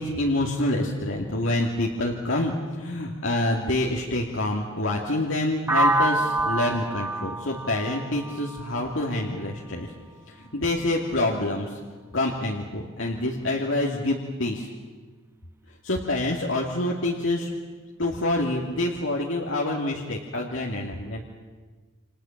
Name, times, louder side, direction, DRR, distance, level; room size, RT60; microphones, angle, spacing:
voice 1, 0.0-9.9 10.3-11.8 12.1-14.7 15.8-17.5 18.0-21.2, left 1 dB, 70° left, -1 dB, 2.7 m, -27 dB
sound 1, 5.7-9.6, right 1 dB, 10° right, 0.9 m, -26 dB
29.5 x 27.5 x 7.4 m, 1.4 s
head